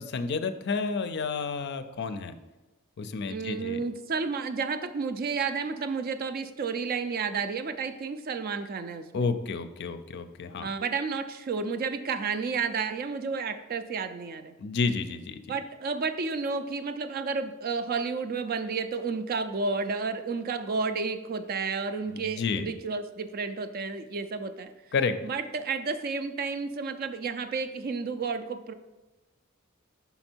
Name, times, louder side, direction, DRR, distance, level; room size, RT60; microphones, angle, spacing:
voice 1, 0.0-2.4 3.0-3.8 9.1-10.7 14.6-15.6 22.1-22.7 24.9-25.1, left 4 dB, 55° left, 10 dB, 0.4 m, -30 dB
voice 2, 3.3-9.3 10.6-14.5 15.5-24.7 25.2-28.7, right 4 dB, 45° right, 9 dB, 0.4 m, -31 dB
5.7 x 4.3 x 4.4 m, 1.1 s
head